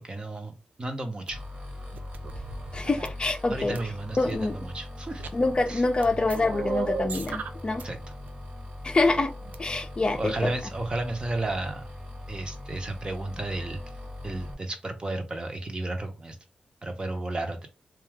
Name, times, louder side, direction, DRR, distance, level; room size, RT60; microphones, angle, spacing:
voice 1, 0.0-1.4 3.5-5.2 5.7-5.8 7.8-8.0 10.1-11.9 12.3-13.8 14.2-16.4 16.8-17.7, right 2 dB, 35° right, 0.7 m, -33 dB
sound 1, 1.3-14.5, left 1 dB, 55° right, 1.2 m, -40 dB
sound 2, 1.3-1.4 1.9-3.1 3.7-4.3 5.1-5.7 6.0-7.8 8.1-8.3 9.4-9.5, right 5 dB, 90° right, 0.3 m, -36 dB
voice 2, 2.7-3.8 4.2-4.6 5.3-7.9 8.8-9.3 9.6-10.5, left 2 dB, 35° left, 0.4 m, -26 dB
2.7 x 2.3 x 3.3 m
cardioid pair, 75°, 3 cm